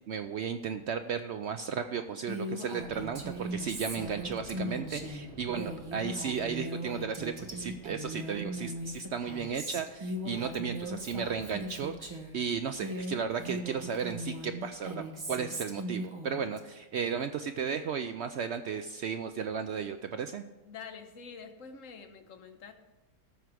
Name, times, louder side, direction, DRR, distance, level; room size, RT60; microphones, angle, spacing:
voice 1, 0.1-20.4, right 6 dB, 65° right, 8 dB, 0.7 m, -34 dB
Female speech woman speaking, 2.3-12.4 12.7-16.6, equal, 20° right, 1.0 m, -39 dB
sound 1, 2.8-15.2, right 1 dB, 25° left, 2.9 m, -53 dB
voice 2, 20.7-22.7, left 6 dB, 65° left, 7 dB, 1.2 m, -46 dB
13.5 x 4.7 x 6.2 m, 1.0 s
omnidirectional pair, 1.5 m